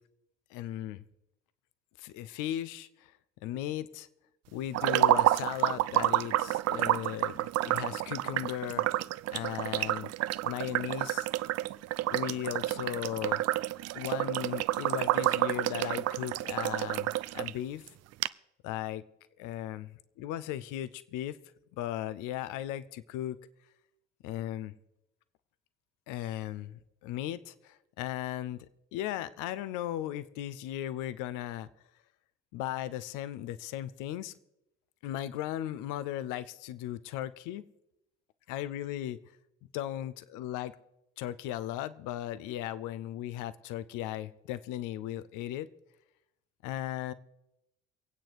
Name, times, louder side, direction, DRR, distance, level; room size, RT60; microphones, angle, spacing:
voice 1, 0.5-1.0 2.0-3.1 3.4-4.1 4.5-9.0 9.3-10.1 10.4-11.3 12.1-13.4 13.9-17.9 18.6-19.0 19.4-21.4 21.7-23.4 24.2-24.7 26.1-28.7 28.9-31.7 32.5-34.3 35.0-37.6 38.5-39.2 39.7-40.7 41.2-45.7 46.6-47.1, left 12 dB, 60° left, 0.9 m, -37 dB
sound 1, 4.7-17.5 17.9-18.0 18.2-18.3, right 15 dB, 45° right, 0.5 m, -29 dB
23.5 x 8.9 x 4.8 m
figure-of-eight pair, 45°, 35 cm